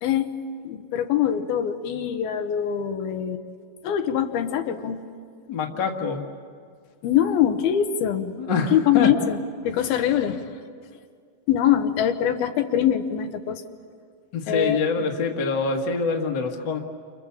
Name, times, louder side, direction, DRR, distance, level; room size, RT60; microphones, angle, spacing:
voice 1, 0.0-0.3 0.6-3.4 3.8-5.0 7.0-8.3 8.7-9.4 9.6-10.5 11.5-13.6 14.5-14.8, left 10 dB, 80° left, 7 dB, 2.9 m, -23 dB
voice 2, 5.5-6.2 8.4-9.1 14.3-16.8, left 4 dB, 45° left, 1 dB, 1.6 m, -25 dB
29.5 x 27.5 x 7.2 m, 2.1 s
omnidirectional pair, 4.4 m